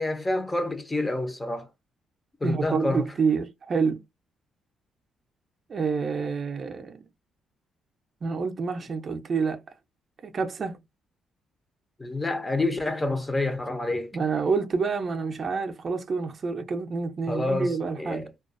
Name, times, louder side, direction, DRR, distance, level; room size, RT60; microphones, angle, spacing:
voice 1, 0.0-1.7 2.4-3.1 12.0-14.1 17.3-18.3, left 2 dB, 15° left, 0.6 m, -28 dB
voice 2, 2.4-4.0 5.7-7.0 8.2-9.6 10.2-10.8 14.1-18.3, right 5 dB, 45° right, 0.5 m, -28 dB
2.3 x 2.2 x 2.5 m
cardioid pair, 90°, 0 cm